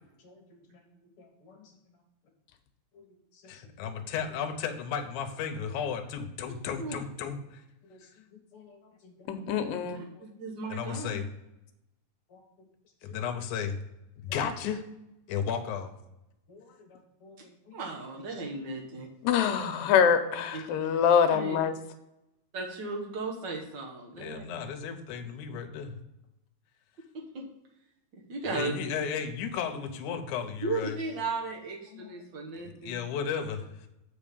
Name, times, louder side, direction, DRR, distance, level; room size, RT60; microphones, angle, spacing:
voice 1, 1.2-1.6 2.9-3.0 7.9-8.0 8.5-9.5 10.2-10.3 12.3-12.4 13.1-13.2 16.5-17.8 31.9-32.1, left 5 dB, 50° left, 1 dB, 1.8 m, -54 dB
voice 2, 3.5-7.6 10.7-11.3 13.0-13.8 14.2-14.8 15.3-15.9 24.2-26.0 28.5-31.0 32.5-33.6, left 7 dB, 70° left, 6 dB, 2.0 m, -34 dB
voice 3, 9.3-10.0 19.2-21.7, left 7 dB, 90° left, 8 dB, 2.3 m, -24 dB
voice 4, 9.8-11.2 17.7-19.1 20.5-20.6 21.3-21.6 22.5-24.4 27.3-27.4 28.1-28.7 30.6-33.0, right 3 dB, 80° right, -1 dB, 1.0 m, -36 dB
7.5 x 5.3 x 5.2 m, 0.91 s
omnidirectional pair, 4.0 m